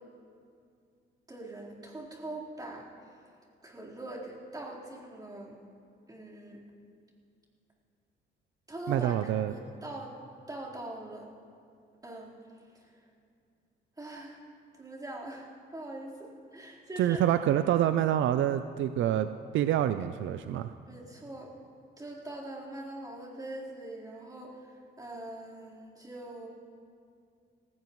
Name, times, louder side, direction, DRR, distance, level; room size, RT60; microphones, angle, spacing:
voice 1, 1.3-3.2 3.6-5.5 6.1-6.6 8.7-10.2 10.5-11.3 12.0-13.0 14.0-14.4 14.7-15.5 15.7-17.3 20.9-21.5 22.0-26.5, right 1 dB, 20° right, -6 dB, 4.1 m, -42 dB
voice 2, 8.9-9.5 17.0-19.3 19.5-20.7, right 11 dB, 75° right, 10 dB, 0.5 m, -26 dB
19.0 x 16.5 x 3.2 m, 2.3 s
cardioid pair, 90°, 20 cm